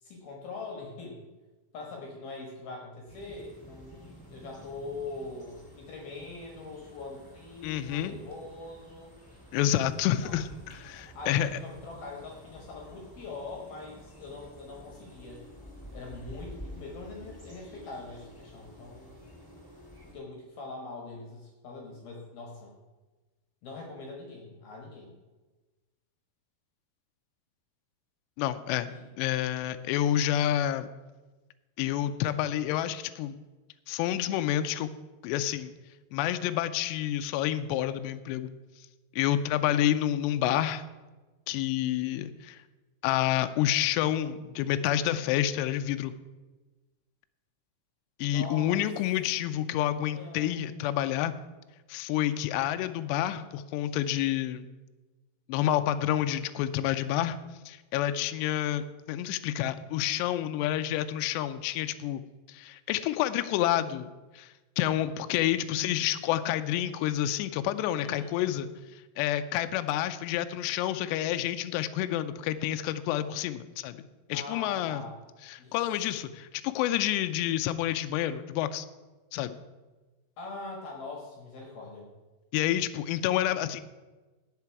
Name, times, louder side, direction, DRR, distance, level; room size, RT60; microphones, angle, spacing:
voice 1, 0.0-1.2 1.7-9.1 10.1-10.4 11.1-15.4 15.9-19.2 20.1-22.7 23.6-25.2 28.9-29.1 48.2-48.8 50.1-50.6 68.0-68.5 74.3-75.2 75.6-76.1 80.4-82.1, left 3 dB, 60° left, 0 dB, 3.1 m, -42 dB
sound 1, 3.1-20.1, equal, 5° left, 1.9 m, -50 dB
voice 2, 7.6-8.1 9.5-11.5 28.4-28.9 29.2-30.9 31.8-33.4 33.9-34.9 35.2-35.7 36.1-38.5 39.1-40.8 41.5-42.6 43.0-46.1 48.2-51.4 51.9-54.7 55.5-57.4 57.7-62.2 62.5-64.1 64.4-64.5 64.8-68.7 69.2-74.0 74.3-75.0 75.5-78.9 79.3-79.6 82.5-83.8, left 12 dB, 85° left, 10 dB, 2.5 m, -29 dB
17.5 x 6.7 x 4.7 m, 1.2 s
omnidirectional pair, 5.5 m